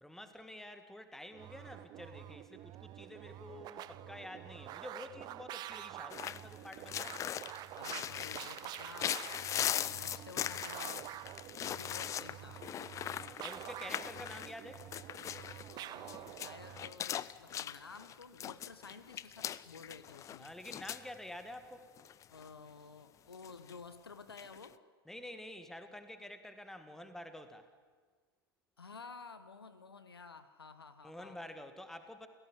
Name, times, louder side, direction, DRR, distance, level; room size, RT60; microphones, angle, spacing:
voice 1, 0.0-7.3 11.5-12.1 13.2-14.8 20.4-21.9 25.1-27.7 31.0-32.3, left 1 dB, 5° left, 9 dB, 1.9 m, -49 dB
sound 1, 1.3-17.0, right 14 dB, 35° right, 0.8 m, -48 dB
sound 2, 6.1-21.2 21.4-21.5 22.0-22.5 23.3-23.8 24.3-24.7, left 10 dB, 25° left, 0.6 m, -40 dB
voice 2, 7.7-11.1 11.6-12.6 15.7-20.5 22.3-24.8 28.8-31.4, left 4 dB, 80° left, 12 dB, 1.5 m, -52 dB
29.0 x 17.0 x 8.5 m, 1.5 s
figure-of-eight pair, 95°, 13 cm